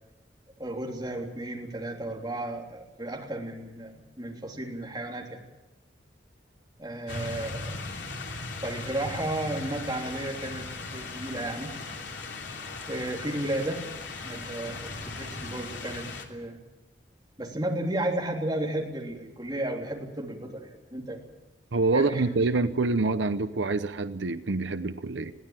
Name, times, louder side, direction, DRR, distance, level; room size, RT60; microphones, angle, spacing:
voice 1, 0.6-5.4 6.8-7.8 8.6-11.7 12.9-13.9 14.2-16.6 17.4-21.2 21.9-22.2, right 1 dB, 20° right, -1 dB, 3.4 m, -33 dB
sound 1, 7.1-16.3, left 3 dB, 80° left, 2.9 m, -38 dB
voice 2, 21.7-25.3, right 3 dB, 80° right, 11 dB, 0.8 m, -26 dB
21.5 x 16.0 x 9.0 m, 1.0 s
head